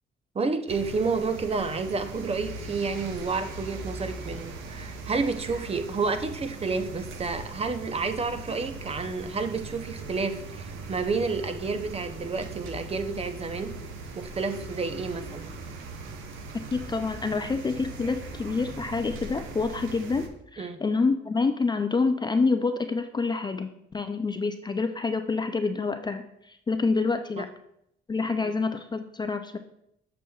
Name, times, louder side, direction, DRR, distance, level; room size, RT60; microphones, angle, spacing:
voice 1, 0.3-13.8 14.2-15.5 20.6-20.8 27.4-27.5 28.4-28.5, right 4 dB, 30° right, 8 dB, 0.6 m, -30 dB
sound 1, 0.7-20.3, right 3 dB, 85° right, 0.8 m, -40 dB
voice 2, 16.7-27.5 28.1-29.6, left 4 dB, 20° left, 7 dB, 0.4 m, -27 dB
6.8 x 6.1 x 2.3 m, 0.76 s
cardioid pair, 90°, 20 cm